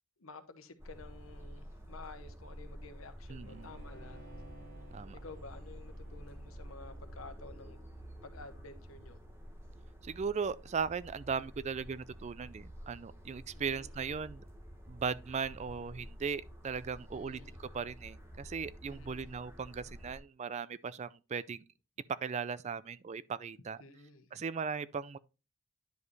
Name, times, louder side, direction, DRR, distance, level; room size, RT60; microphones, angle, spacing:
voice 1, 0.2-4.2 5.1-7.8 8.2-9.2 13.5-13.9 17.1-17.6 18.8-19.3 23.8-24.3, left 3 dB, 90° left, 1.0 m, -52 dB
sound 1, 0.8-20.2, equal, 15° right, 1.4 m, -50 dB
voice 2, 3.3-3.7 4.9-5.2 10.0-14.4 14.9-17.4 17.7-21.6 22.2-23.8 24.3-25.2, right 5 dB, 35° right, 0.4 m, -38 dB
Bowed string instrument, 3.4-8.8, equal, 55° right, 4.8 m, -58 dB
10.5 x 4.9 x 3.2 m
head